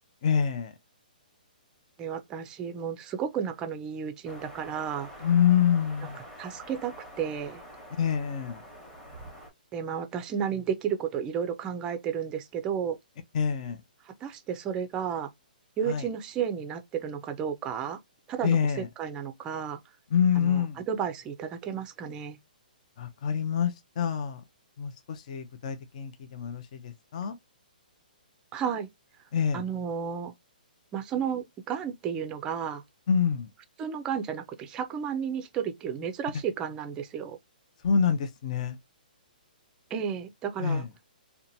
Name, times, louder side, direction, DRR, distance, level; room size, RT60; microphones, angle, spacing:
voice 1, 0.2-0.7 5.2-6.2 8.0-8.6 13.3-13.8 15.9-16.1 18.4-18.9 20.1-20.8 23.0-24.4 24.8-27.4 29.3-29.6 33.1-33.5 37.8-38.8 40.6-40.9, left 7 dB, 50° left, 0.4 m, -26 dB
voice 2, 2.0-5.1 6.4-7.6 9.7-13.0 14.0-15.3 15.8-18.0 18.3-19.8 20.4-22.4 28.5-28.9 29.5-30.3 30.9-32.8 33.8-37.4 39.9-40.8, right 7 dB, 15° right, 0.4 m, -32 dB
sound 1, 4.3-9.5, equal, 10° left, 0.9 m, -46 dB
2.8 x 2.2 x 2.6 m
hypercardioid pair, 155°, 5 cm